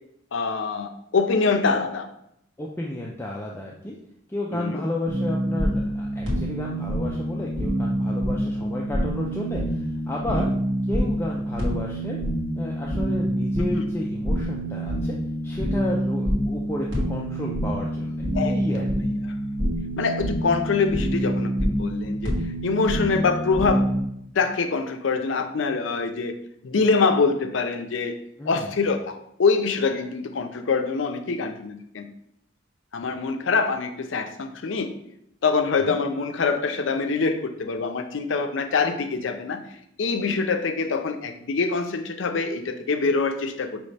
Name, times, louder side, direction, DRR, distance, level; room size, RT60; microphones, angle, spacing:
voice 1, 0.3-2.1 4.5-4.8 10.3-10.5 13.7-13.8 18.3-18.5 20.0-22.3 22.6-23.9 24.3-26.4 26.6-28.2 28.5-32.1 32.9-34.9 35.4-39.6 40.0-43.8, left 4 dB, 75° left, 7 dB, 0.5 m, -24 dB
voice 2, 2.6-3.9 4.3-10.5 10.9-12.2 12.5-15.2 15.4-19.1 28.4-28.8 35.9-36.0, left 1 dB, 10° left, -2 dB, 0.4 m, -32 dB
sound 1, 5.1-24.0, equal, 85° right, 1.5 m, -26 dB
5.2 x 3.1 x 3.2 m, 0.76 s
head